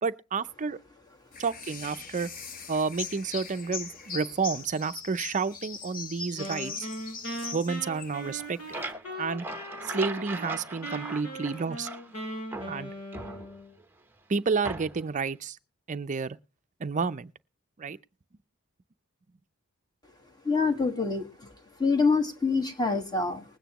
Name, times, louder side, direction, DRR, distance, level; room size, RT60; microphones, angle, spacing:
voice 1, 0.0-0.8 1.4-2.3 2.7-6.9 7.5-8.6 9.2-9.5 9.8-11.9 12.7-12.9 14.3-15.6 15.9-16.4 16.8-17.3 17.8-18.0, right 5 dB, 35° right, 0.5 m, -30 dB
sound 1, 1.3-8.9, left 5 dB, 40° left, 1.0 m, -40 dB
Wind instrument woodwind instrument, 6.4-10.5 10.8-13.7, equal, 90° left, 5.5 m, -39 dB
sound 2, 8.2-12.2 12.5-13.8 14.6-15.2, right 2 dB, 10° right, 0.8 m, -39 dB
voice 2, 20.4-21.3 21.8-23.4, left 4 dB, 20° left, 1.7 m, -25 dB
20.5 x 9.1 x 3.0 m
head